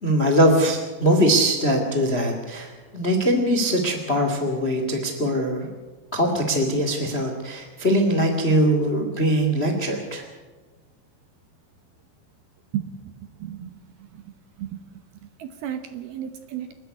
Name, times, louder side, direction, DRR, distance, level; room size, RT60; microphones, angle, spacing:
voice 1, 0.0-5.7 6.1-10.2, right 1 dB, 25° left, 4 dB, 1.3 m, -22 dB
voice 2, 12.7-13.1 13.4-14.3 14.6-15.0 15.4-16.7, right 10 dB, 70° right, 8 dB, 2.6 m, -34 dB
28.5 x 10.0 x 9.6 m, 1.3 s
omnidirectional pair, 5.2 m